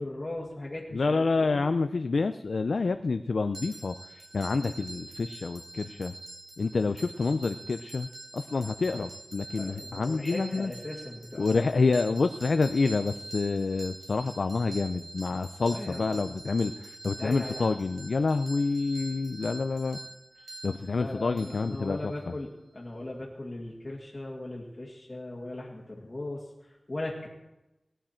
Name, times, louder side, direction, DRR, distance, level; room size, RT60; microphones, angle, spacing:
voice 1, 0.0-1.7 9.6-11.6 15.7-16.4 17.2-17.7 20.4-20.5 20.9-27.3, left 2 dB, 35° left, -4 dB, 2.0 m, -38 dB
voice 2, 0.9-6.1 6.6-8.1 8.3-10.7 11.4-20.0 20.6-22.3, left 4 dB, 80° left, 9 dB, 0.4 m, -28 dB
sound 1, 3.5-22.3, right 2 dB, 75° right, 3.6 m, -45 dB
18.5 x 10.0 x 4.4 m, 1.0 s
wide cardioid pair, 80°, 0 cm